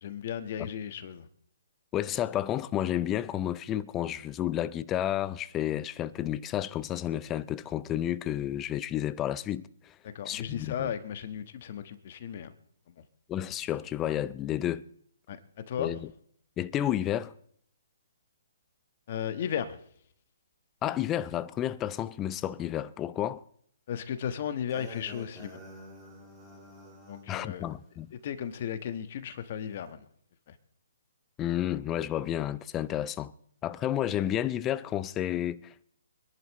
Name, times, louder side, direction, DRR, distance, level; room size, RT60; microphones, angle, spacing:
voice 1, 0.0-1.3 10.0-12.5 15.3-16.0 19.1-19.8 23.9-25.6 27.1-27.7 28.1-30.1 30.5-30.6, left 8 dB, 50° left, 1.4 m, -35 dB
voice 2, 1.9-9.9 10.3-10.9 13.3-14.8 15.8-16.0 16.6-17.3 20.8-23.4 27.3-28.1 31.4-33.3 33.6-35.8, left 11 dB, 20° left, 0.5 m, -31 dB
sound 1, 24.7-27.3, equal, 5° right, 3.1 m, -48 dB
25.0 x 11.0 x 3.1 m
hypercardioid pair, 140°, 0 cm